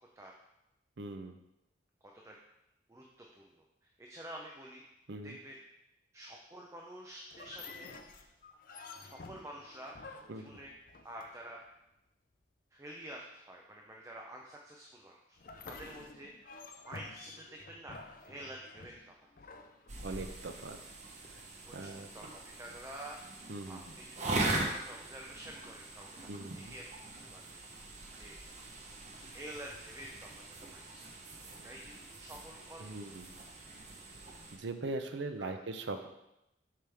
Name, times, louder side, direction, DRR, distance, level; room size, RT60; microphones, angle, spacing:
voice 1, 1.0-1.4 5.1-5.4 10.3-10.6 20.0-20.8 21.3-21.5 21.7-22.1 23.5-23.9 26.3-26.7 31.6-31.7 32.8-33.3 34.5-36.1, right 2 dB, 75° right, 7 dB, 0.6 m, -41 dB
voice 2, 2.9-3.5 3.8-4.8 5.2-5.6 6.1-7.9 8.2-8.3 9.0-10.7 11.0-11.6 12.7-15.4 15.6-16.3 16.8-19.3 21.7-27.4 27.7-28.3 29.2-31.2 31.6-33.0 35.4-35.6, right 1 dB, 15° right, -1 dB, 0.6 m, -49 dB
sound 1, 7.3-11.6 15.4-20.5, left 3 dB, 50° left, 0.5 m, -51 dB
sound 2, 19.9-34.6, right 2 dB, 40° right, 0.9 m, -41 dB
7.5 x 5.2 x 3.4 m, 0.88 s
head